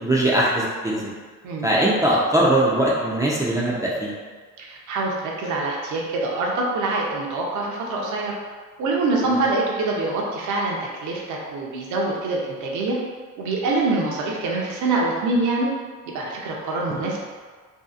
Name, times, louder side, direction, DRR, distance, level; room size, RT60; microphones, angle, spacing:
voice 1, 0.0-1.1 1.6-4.1, right 1 dB, 10° right, -6 dB, 0.3 m, -20 dB
voice 2, 4.6-8.4 8.8-13.0 13.4-15.7 16.1-17.2, right 2 dB, 65° right, -2 dB, 0.6 m, -25 dB
2.7 x 2.4 x 2.3 m, 1.5 s
cardioid pair, 100°, 33 cm